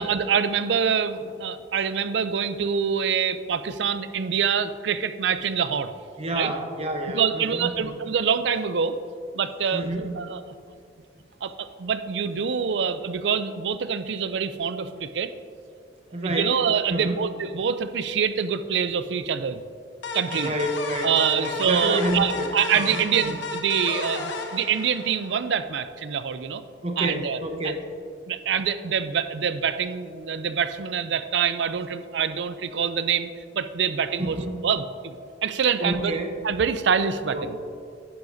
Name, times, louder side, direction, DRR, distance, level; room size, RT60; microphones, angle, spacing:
voice 1, 0.0-5.9 6.3-6.5 7.0-9.0 9.3-9.8 10.1-10.4 11.4-15.3 16.2-19.6 20.1-20.5 21.0-26.6 27.0-27.4 27.6-27.7 28.3-34.4 34.6-35.2 35.4-36.2 36.4-37.6, right 7 dB, 70° right, 12 dB, 0.4 m, -25 dB
voice 2, 6.2-7.9 9.7-10.2 16.1-16.5 16.9-17.3 20.3-21.1 21.4-22.5 22.8-23.4 26.8-27.8 34.2-34.6 35.8-36.3 37.3-37.6, right 1 dB, 35° right, 4 dB, 0.8 m, -29 dB
sound 1, 20.0-25.5, left 4 dB, 75° left, 0.9 m, -33 dB
10.5 x 9.7 x 2.7 m, 2.3 s
head